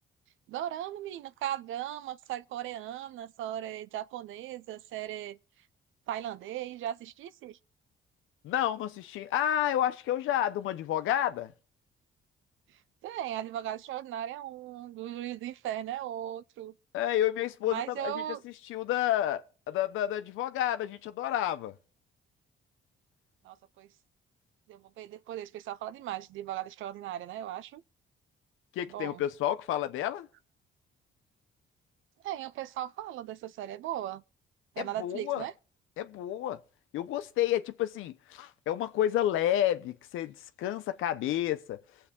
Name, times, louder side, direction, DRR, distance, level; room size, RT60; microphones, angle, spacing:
voice 1, 0.5-5.4 6.1-7.6 13.0-16.7 17.6-18.4 23.4-23.9 24.7-27.8 28.9-29.2 32.2-34.2 34.8-35.5, right 12 dB, 80° right, 0.5 m, -37 dB
voice 2, 8.4-11.5 16.9-18.1 18.4-21.7 28.7-30.3 34.8-35.5 36.0-36.6 36.9-41.8, left 12 dB, 90° left, 0.9 m, -30 dB
21.0 x 7.7 x 3.7 m
cardioid pair, 90°, 20 cm